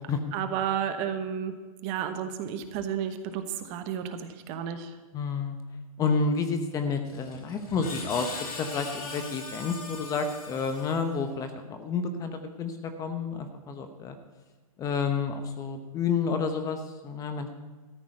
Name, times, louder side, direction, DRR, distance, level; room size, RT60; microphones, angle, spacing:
voice 1, 0.3-1.5 1.8-5.0, right 8 dB, 30° right, 8 dB, 1.1 m, -32 dB
voice 2, 5.1-5.6 6.0-8.3 8.6-14.2 14.8-17.5, left 5 dB, 20° left, 7 dB, 0.9 m, -30 dB
Screech, 7.0-11.3, left 3 dB, 90° left, 4.2 m, -40 dB
13.5 x 6.1 x 9.9 m, 1.2 s
hypercardioid pair, 150°, 19 cm